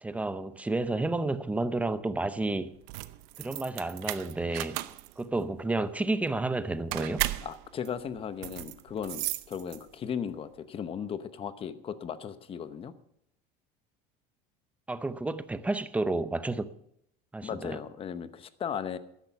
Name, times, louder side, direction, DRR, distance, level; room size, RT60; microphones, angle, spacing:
voice 1, 0.0-2.7 3.4-4.8 5.2-7.2 14.9-16.7 17.3-17.8, right 2 dB, 5° right, 0.6 m, -31 dB
sound 1, 2.8-10.1, right 18 dB, 75° right, 0.7 m, -36 dB
voice 2, 7.4-12.9 17.4-19.0, left 7 dB, 30° left, 0.9 m, -36 dB
13.0 x 10.5 x 5.8 m
cardioid pair, 140°, 20 cm